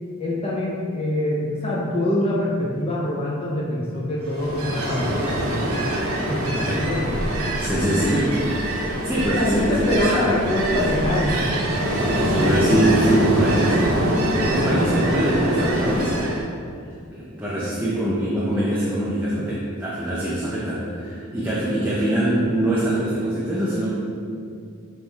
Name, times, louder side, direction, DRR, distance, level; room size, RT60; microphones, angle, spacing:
voice 1, 0.2-5.8 6.3-7.1 9.4-11.5, left 1 dB, 25° left, -5 dB, 0.8 m, -24 dB
Ocean, 4.3-16.4, right 1 dB, 90° right, 1.3 m, -23 dB
voice 2, 7.6-8.4 8.8-10.3 10.7-10.8 12.2-14.1 14.4-16.6 17.1-23.9, right 1 dB, 10° right, -8 dB, 0.7 m, -24 dB
6.6 x 3.6 x 4.6 m, 2.3 s
head